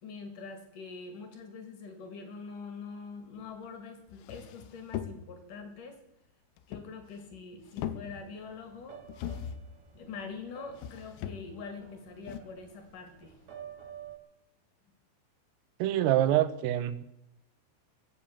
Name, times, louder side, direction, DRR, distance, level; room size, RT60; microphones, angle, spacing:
voice 1, 0.0-6.0 6.7-9.0 9.9-13.4, left 4 dB, 50° left, 5 dB, 2.9 m, -44 dB
sound 1, 3.6-3.7 4.1-5.5 6.6-7.4 7.6-8.5 9.1-9.8 10.7-11.7 12.3-12.4, left 10 dB, 75° left, 2.8 m, -40 dB
sound 2, 8.0-14.2, right 8 dB, 55° right, 2.1 m, -51 dB
voice 2, 15.8-17.0, right 12 dB, 90° right, 11 dB, 3.5 m, -26 dB
21.0 x 7.4 x 8.7 m, 0.86 s
omnidirectional pair, 5.9 m